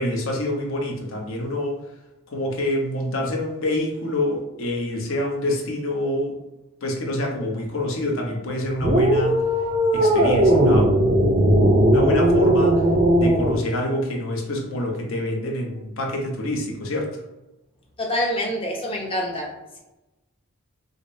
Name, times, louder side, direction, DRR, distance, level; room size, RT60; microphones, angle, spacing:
voice 1, 0.0-1.8 2.3-6.3 6.8-9.4 9.9-11.6 11.9-12.8 13.2-17.2, left 1 dB, 60° left, 0 dB, 0.7 m, -26 dB
sound 1, 8.8-13.6, right 1 dB, 30° right, 0.4 m, -18 dB
voice 2, 18.0-19.5, left 1 dB, 25° left, -1 dB, 0.6 m, -26 dB
4.9 x 2.0 x 2.6 m, 0.99 s
head